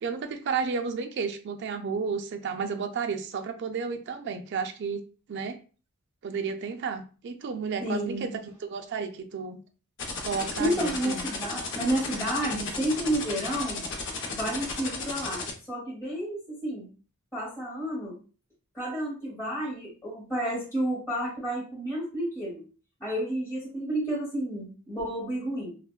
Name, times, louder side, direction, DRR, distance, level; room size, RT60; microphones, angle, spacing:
voice 1, 0.0-5.0 5.3-5.6 6.2-8.3 8.7-9.6 10.2-11.3, right 5 dB, 55° right, 6 dB, 0.4 m, -32 dB
voice 2, 7.8-8.2 10.6-13.8 14.3-16.8 17.3-18.2 18.7-22.6 23.0-25.7, right 1 dB, 10° left, -7 dB, 0.9 m, -31 dB
sound 1, 10.0-15.5, left 4 dB, 55° left, 0.6 m, -34 dB
3.2 x 2.0 x 2.2 m, 0.36 s
head